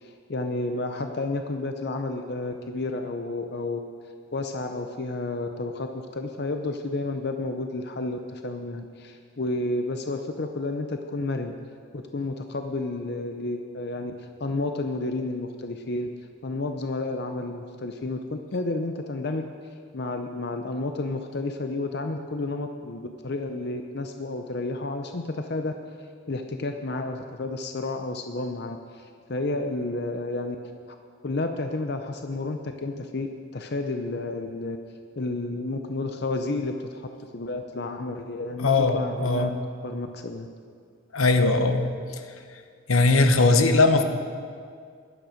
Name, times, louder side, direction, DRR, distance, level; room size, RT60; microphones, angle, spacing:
voice 1, 0.0-3.9 4.3-11.5 11.9-16.1 16.4-19.5 19.9-25.7 26.3-30.6 31.2-33.3 33.5-34.8 35.2-37.1 37.3-39.5 39.8-40.5, left 2 dB, 50° left, 6 dB, 0.6 m, -31 dB
voice 2, 38.6-39.5 41.1-41.9 42.9-44.0, left 3 dB, 85° left, 7 dB, 1.0 m, -20 dB
15.0 x 11.0 x 5.1 m, 2.1 s
head